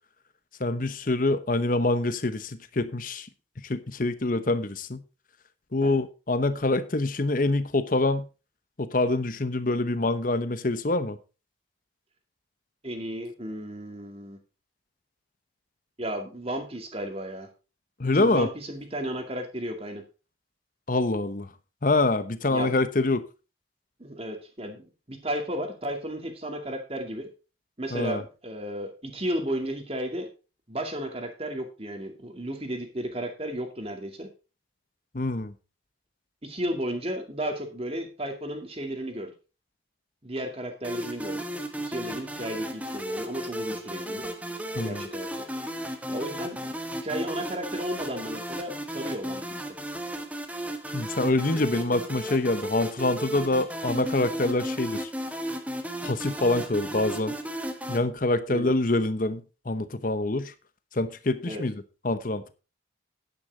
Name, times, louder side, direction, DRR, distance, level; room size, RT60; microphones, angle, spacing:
voice 1, 0.6-3.3 3.6-5.0 5.7-8.3 8.8-11.2 18.0-18.5 20.9-21.5 21.8-23.2 27.9-28.2 35.1-35.5 44.7-45.1 50.9-55.1 56.0-57.4 57.9-60.5 60.9-62.5, left 2 dB, 45° left, 0.9 m, -26 dB
voice 2, 12.8-14.4 16.0-17.5 18.1-20.0 22.5-22.7 24.0-27.3 27.8-30.3 30.7-34.3 36.4-39.3 40.2-41.4 41.8-44.2 44.8-45.5 46.1-46.7 47.0-49.6 58.5-58.8 61.5-61.6, equal, 30° right, 2.3 m, -34 dB
sound 1, 40.8-58.0, equal, 5° right, 1.2 m, -34 dB
10.0 x 9.7 x 4.0 m
head